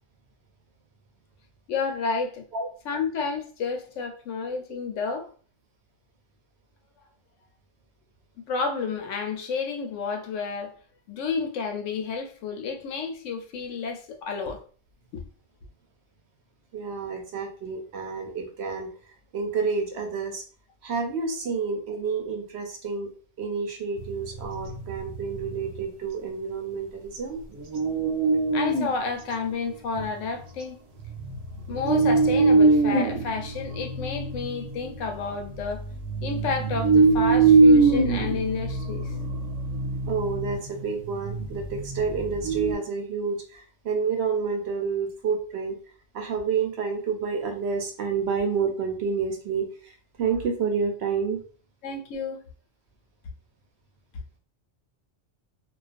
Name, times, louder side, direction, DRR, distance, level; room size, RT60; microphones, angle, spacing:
voice 1, 1.7-2.4 2.9-5.3 8.5-10.7 11.1-14.6 28.5-30.8 31.7-35.8 36.2-39.1 51.8-52.4, left 5 dB, 80° left, 0.9 m, -30 dB
voice 2, 16.7-18.9 19.3-20.4 20.8-23.1 23.4-27.4 40.1-45.8 46.1-51.4, right 5 dB, 70° right, 0.8 m, -29 dB
sound 1, 24.0-25.8 27.5-29.0 29.3-29.4 29.9-30.4 31.0-42.7, right 3 dB, 85° right, 1.0 m, -23 dB
2.3 x 2.3 x 2.4 m
omnidirectional pair, 1.3 m